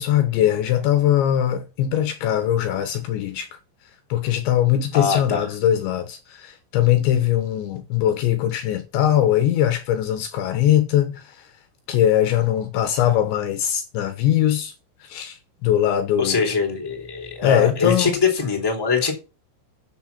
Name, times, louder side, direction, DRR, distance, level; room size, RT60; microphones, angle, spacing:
voice 1, 0.0-3.5 4.1-11.5 11.9-14.7 15.0-16.4 17.4-18.1, left 11 dB, 75° left, 3.1 m, -21 dB
voice 2, 4.9-5.5 16.2-19.1, left 5 dB, 5° left, 2.5 m, -22 dB
13.5 x 6.9 x 5.9 m
omnidirectional pair, 5.9 m